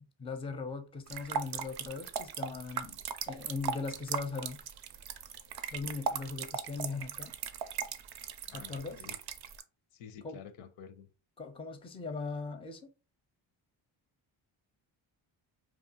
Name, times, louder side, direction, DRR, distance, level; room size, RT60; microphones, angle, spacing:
voice 1, 0.0-4.6 5.7-7.3 8.5-9.0 10.2-10.4 11.4-12.8, left 4 dB, 10° left, 0.4 m, -39 dB
sound 1, 1.1-9.6, right 7 dB, 50° right, 0.5 m, -38 dB
voice 2, 8.5-9.2 9.9-11.1, left 8 dB, 85° left, 0.6 m, -50 dB
2.4 x 2.3 x 2.7 m
cardioid pair, 65°, 50 cm